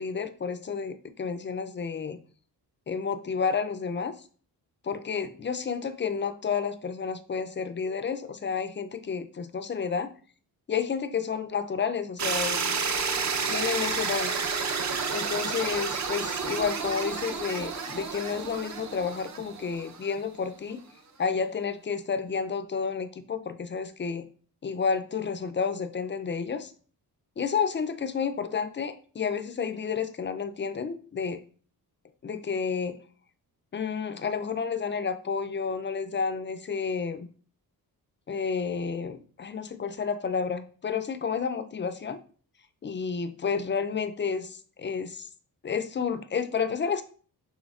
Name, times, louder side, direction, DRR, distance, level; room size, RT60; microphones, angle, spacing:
voice 1, 0.0-2.2 2.9-4.1 4.8-10.1 10.7-12.6 13.5-14.3 15.1-20.8 21.2-24.2 24.6-26.7 27.4-31.4 32.2-33.0 33.7-37.3 38.3-42.2 42.8-45.3 45.6-47.0, left 6 dB, 30° left, 9 dB, 0.4 m, -30 dB
sound 1, 12.2-20.2, right 5 dB, 45° right, 0.6 m, -30 dB
6.2 x 3.1 x 2.4 m, 0.42 s
cardioid pair, 100°, 40 cm